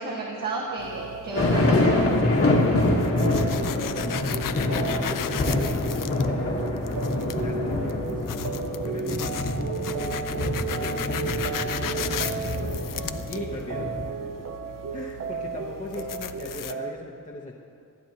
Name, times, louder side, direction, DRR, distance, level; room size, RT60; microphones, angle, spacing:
voice 1, 0.0-2.0, right 3 dB, 70° right, -4 dB, 1.6 m, -32 dB
sound 1, 0.8-16.7, left 10 dB, 75° left, 0.5 m, -37 dB
sound 2, 0.9-16.9, right 7 dB, 45° right, 0.5 m, -34 dB
sound 3, 1.3-14.1, left 2 dB, 45° left, 1.4 m, -26 dB
voice 2, 2.2-4.2 4.6-8.4 8.8-12.8 13.3-14.3 14.6-17.5, left 2 dB, 25° left, -2 dB, 0.9 m, -39 dB
23.5 x 9.3 x 3.0 m, 2.3 s
wide cardioid pair, 145°, 33 cm